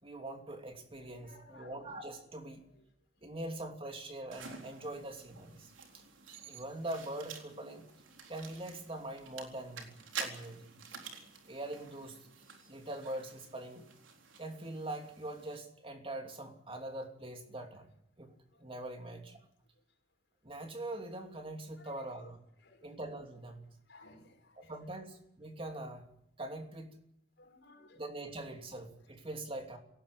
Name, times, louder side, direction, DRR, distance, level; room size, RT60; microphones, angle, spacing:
voice 1, 0.0-2.7 3.2-6.0 6.5-7.9 8.3-9.9 10.2-10.7 11.5-12.2 12.7-13.9 14.4-17.9 18.2-18.3 18.6-19.4 20.4-22.4 22.8-23.7 24.6-26.0 26.4-27.0 28.0-29.8, right 1 dB, 30° right, 4 dB, 3.0 m, -43 dB
voice 2, 1.3-1.9 22.6-22.8 23.9-24.7 27.4-28.0, left 2 dB, 65° left, 2 dB, 6.0 m, -58 dB
sound 1, 4.3-15.6, right 6 dB, 85° right, 4.0 m, -49 dB
20.5 x 18.0 x 8.6 m, 0.75 s
head